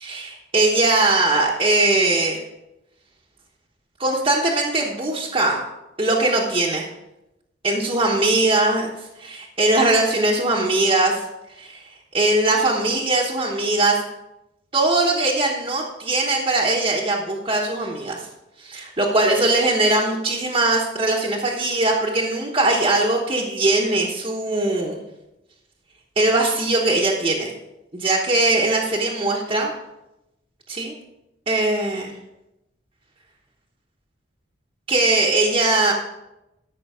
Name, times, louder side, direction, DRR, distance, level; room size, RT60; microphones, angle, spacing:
voice 1, 0.0-2.4 4.0-5.7 6.0-6.9 7.6-8.9 9.2-11.2 11.6-11.8 12.1-14.0 14.7-18.3 18.6-25.0 26.2-27.5 27.9-29.7 30.7-30.9 31.5-32.1 34.9-35.9, right 2 dB, 30° right, -5 dB, 1.1 m, -20 dB
13.5 x 6.1 x 4.9 m, 0.94 s
head